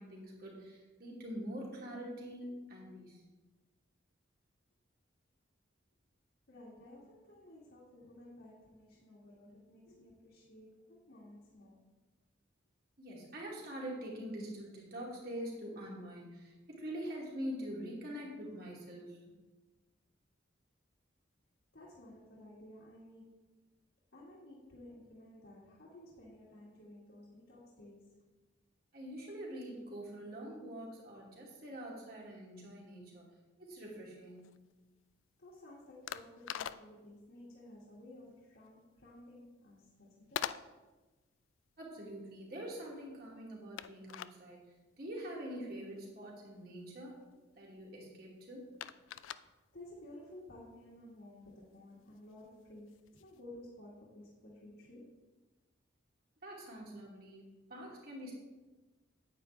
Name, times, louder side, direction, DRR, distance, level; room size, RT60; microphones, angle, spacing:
voice 1, 0.0-3.2 13.0-19.3 28.9-33.3 33.6-34.5 41.8-47.2 47.5-48.7 56.4-58.3, equal, 50° right, -3 dB, 2.6 m, -45 dB
voice 2, 6.5-11.8 17.5-17.9 21.7-23.4 24.1-28.1 35.4-40.6 47.6-47.8 49.7-55.2, left 1 dB, 65° left, -7 dB, 2.1 m, -54 dB
sound 1, 33.7-53.4, left 10 dB, 80° left, 0.3 m, -48 dB
9.4 x 9.0 x 3.4 m, 1.2 s
head